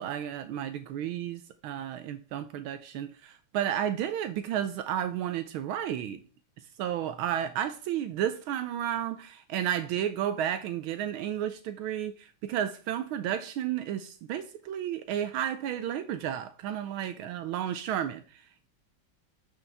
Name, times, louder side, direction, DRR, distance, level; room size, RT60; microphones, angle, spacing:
voice 1, 0.0-6.2 6.8-18.7, right 10 dB, 80° right, 1.4 m, -32 dB
11.0 x 5.5 x 3.4 m
omnidirectional pair, 2.3 m